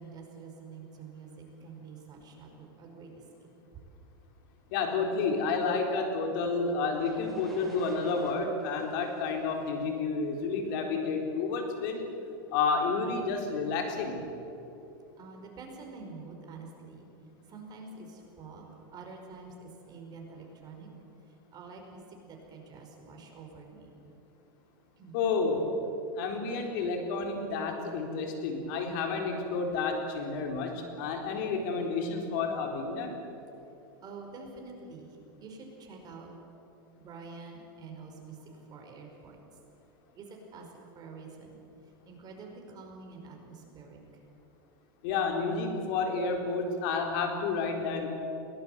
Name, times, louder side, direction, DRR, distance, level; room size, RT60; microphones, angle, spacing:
voice 1, 0.0-3.2 3.7-3.8 15.2-17.1 17.5-18.6 18.9-20.9 21.3-24.0 25.0-25.2 34.0-36.3 37.0-39.4 40.1-41.6 42.1-44.0, right 4 dB, 35° right, 2 dB, 5.2 m, -47 dB
voice 2, 4.7-12.1 12.5-14.2 25.1-25.7 26.2-33.1 45.0-48.1, left 4 dB, 60° left, 3 dB, 4.0 m, -30 dB
sound 1, 7.0-10.9, equal, ahead, 5.7 m, -50 dB
22.0 x 18.5 x 8.2 m, 2.9 s
hypercardioid pair, 120°, 12 cm